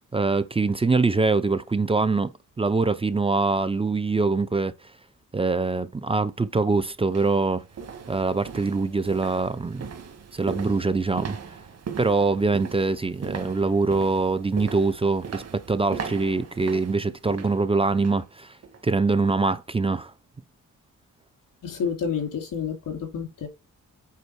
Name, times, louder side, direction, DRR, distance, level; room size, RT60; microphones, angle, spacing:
voice 1, 0.1-2.3 2.6-4.7 5.3-7.6 8.1-9.9 10.3-11.4 12.0-18.5 18.8-20.1, right 3 dB, 20° right, 0.6 m, -23 dB
sound 1, 6.3-6.4 7.0-18.3 18.6-18.9 19.3-19.4, right 6 dB, 50° right, 1.6 m, -39 dB
voice 2, 21.6-23.5, left 7 dB, 90° left, 3.1 m, -29 dB
8.4 x 4.3 x 4.6 m
wide cardioid pair, 140°, 31 cm